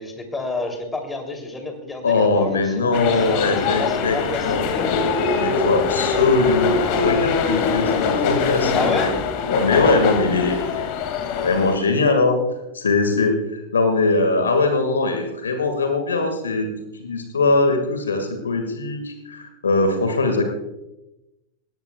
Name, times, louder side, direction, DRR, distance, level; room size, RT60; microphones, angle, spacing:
voice 1, 0.0-4.9 8.7-9.1, left 3 dB, 10° left, 4 dB, 3.1 m, -29 dB
voice 2, 2.0-4.2 4.4-4.7 5.3-9.1 9.5-10.9 11.4-12.4 12.7-16.7 17.0-20.4, left 3 dB, 70° left, 6 dB, 2.0 m, -21 dB
sound 1, 2.9-11.7, left 5 dB, 45° left, 2.4 m, -23 dB
19.0 x 18.0 x 2.4 m, 0.95 s
figure-of-eight pair, 90°, 0 cm